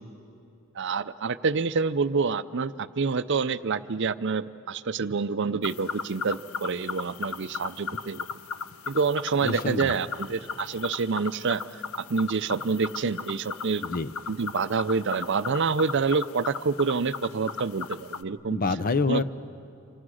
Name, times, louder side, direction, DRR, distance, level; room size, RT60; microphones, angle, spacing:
voice 1, 0.8-8.3 8.9-11.8 12.1-13.8 14.3-18.6 19.1-19.2, right 5 dB, 55° right, 13 dB, 0.5 m, -27 dB
sound 1, 5.6-18.2, left 6 dB, 70° left, 0.7 m, -37 dB
voice 2, 9.4-10.0 13.8-14.1 18.5-19.2, left 3 dB, 40° left, 11 dB, 0.7 m, -27 dB
28.5 x 26.5 x 6.4 m, 2.7 s
head